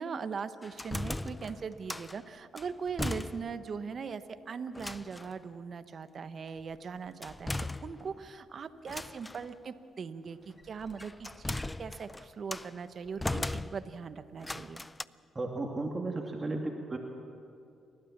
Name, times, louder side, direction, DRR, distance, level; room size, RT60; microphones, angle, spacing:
voice 1, 0.0-14.8, right 5 dB, 50° right, 11 dB, 1.0 m, -40 dB
sound 1, 0.6-2.2 2.6-3.7 4.0-4.1 4.7-5.4 7.2-8.3 8.9-9.5 10.6-12.7 13.2-14.0 14.4-15.0, left 2 dB, 15° left, 0.4 m, -38 dB
voice 2, 15.4-17.0, right 2 dB, 25° right, 1 dB, 2.0 m, -34 dB
29.5 x 12.5 x 7.3 m, 2.5 s
cardioid pair, 90°, 0 cm